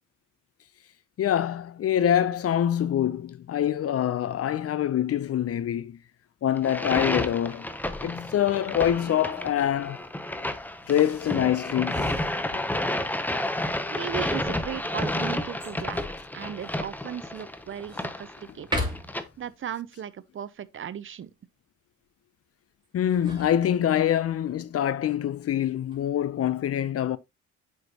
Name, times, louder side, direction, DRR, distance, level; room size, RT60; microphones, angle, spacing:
voice 1, 1.2-6.0 6.4-7.7 8.0-10.0 10.9-12.2 12.5-12.6 22.9-27.2, left 10 dB, 50° left, 0.6 m, -25 dB
sound 1, 6.6-19.2, left 1 dB, 5° left, 0.8 m, -31 dB
voice 2, 13.9-16.0 16.3-18.7 19.4-21.3, right 9 dB, 40° right, 0.6 m, -36 dB
sound 2, 15.6-16.1 16.6-16.7 17.2-18.1 18.6-19.3 22.8-24.2 25.6-26.1, equal, 15° right, 2.9 m, -35 dB
7.8 x 5.2 x 2.9 m
cardioid pair, 90°, 30 cm